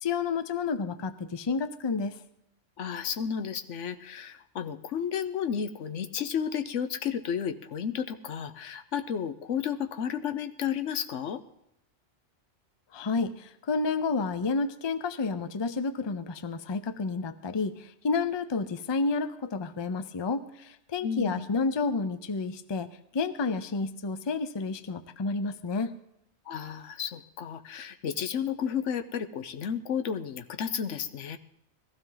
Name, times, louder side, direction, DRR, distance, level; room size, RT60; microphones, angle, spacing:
voice 1, 0.0-2.2 12.9-22.9 23.1-25.9, left 4 dB, 30° left, 12 dB, 0.5 m, -30 dB
voice 2, 2.8-11.4 21.0-21.5 26.5-31.4, left 7 dB, 85° left, 9 dB, 1.1 m, -32 dB
20.5 x 15.5 x 3.9 m, 0.80 s
omnidirectional pair, 1.2 m